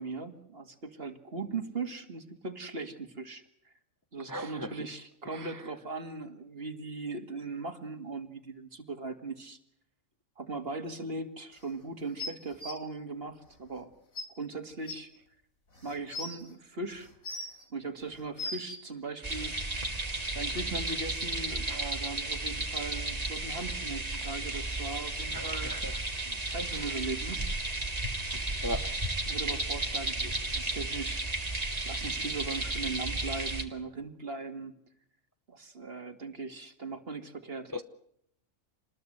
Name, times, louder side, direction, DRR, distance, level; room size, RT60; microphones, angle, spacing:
voice 1, 0.0-3.7 4.1-9.6 10.4-13.9 14.4-15.1 15.8-17.4 17.7-19.6 20.3-25.7 26.3-27.5 28.3-28.6 29.3-31.4 31.9-34.8 35.5-37.7, right 3 dB, 45° right, 7 dB, 2.3 m, -39 dB
voice 2, 4.3-4.9 5.2-5.7 25.3-26.2 26.7-27.2 28.2-29.0 37.7-37.8, equal, 15° left, 8 dB, 0.8 m, -40 dB
sound 1, 12.2-12.7 13.8-13.9 14.1-14.2 14.9-15.0 15.7-16.4 17.0-17.6 18.1-18.8 19.8-19.9, left 2 dB, 90° left, 4.5 m, -38 dB
sound 2, 19.2-33.6, right 2 dB, 30° right, 2.4 m, -33 dB
27.0 x 20.5 x 7.9 m, 0.71 s
omnidirectional pair, 1.4 m